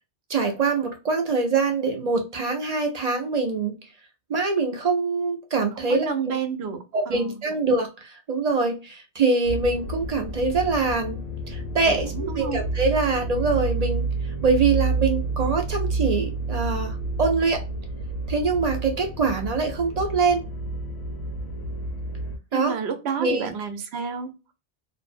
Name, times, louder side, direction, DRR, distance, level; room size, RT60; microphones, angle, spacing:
voice 1, 0.3-3.7 4.3-6.3 6.9-11.2 11.5-14.1 14.4-17.6 18.3-20.4 22.5-22.7 23.2-23.5, right 4 dB, 50° right, 3 dB, 0.5 m, -24 dB
voice 2, 5.8-7.4 11.9-12.6 22.5-24.3, right 6 dB, 80° right, 7 dB, 0.9 m, -30 dB
sound 1, 9.4-22.4, right 3 dB, 90° left, 0.9 m, -29 dB
2.5 x 2.0 x 2.4 m, 0.29 s
omnidirectional pair, 1.1 m